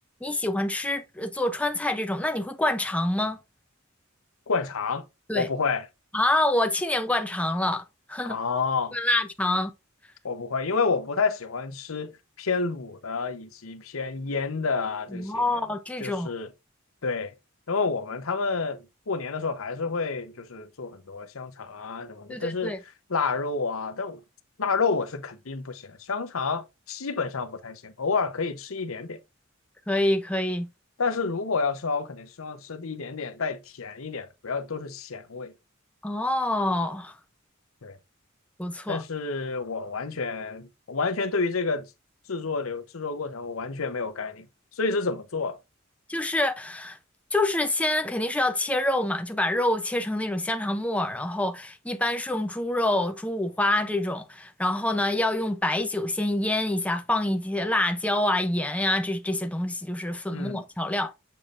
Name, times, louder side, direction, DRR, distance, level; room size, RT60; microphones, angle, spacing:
voice 1, 0.2-3.4 5.3-5.5 6.1-8.4 8.9-9.7 15.1-16.3 22.3-22.8 29.9-30.7 36.0-37.2 38.6-39.0 46.1-47.0 47.3-61.1, left 1 dB, 5° left, 0.5 m, -26 dB
voice 2, 4.5-5.1 5.3-5.8 8.2-9.0 10.2-12.1 12.4-15.6 16.0-16.5 17.0-17.3 17.7-22.7 23.1-24.2 24.6-29.2 31.0-35.5 37.8-38.0 38.9-41.9 42.3-44.5 44.7-45.6 60.3-60.6, left 4 dB, 85° left, 0.9 m, -29 dB
6.9 x 5.7 x 2.5 m
head